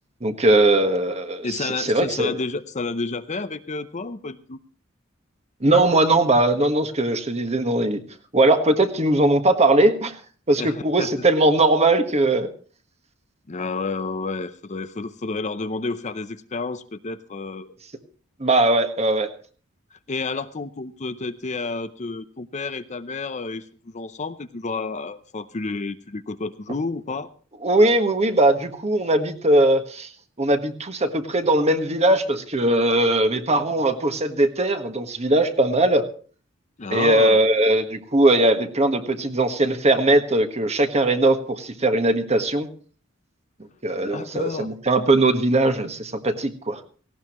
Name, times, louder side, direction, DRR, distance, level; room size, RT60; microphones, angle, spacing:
voice 1, 0.2-2.3 5.6-8.0 8.3-10.2 10.5-12.5 18.4-19.3 27.6-30.1 30.4-36.1 36.9-42.7 43.8-46.8, right 2 dB, 35° right, 8 dB, 1.4 m, -20 dB
voice 2, 1.4-4.6 10.6-11.1 13.5-17.7 19.9-27.3 36.8-37.4 44.0-44.7, left 3 dB, 35° left, 12 dB, 0.6 m, -30 dB
18.0 x 16.5 x 3.0 m, 0.40 s
head